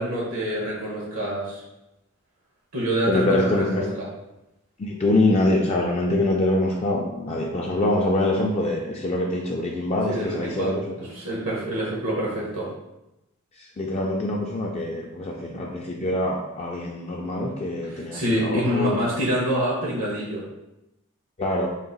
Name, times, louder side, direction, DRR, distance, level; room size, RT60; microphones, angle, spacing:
voice 1, 0.0-1.6 2.7-4.1 10.1-10.7 11.0-12.7 17.8-20.5, right 1 dB, 80° right, -5 dB, 0.9 m, -26 dB
voice 2, 3.1-3.9 4.8-10.9 13.6-19.0 21.4-21.7, left 1 dB, 30° left, -1 dB, 0.3 m, -24 dB
3.7 x 2.4 x 3.9 m, 0.93 s
head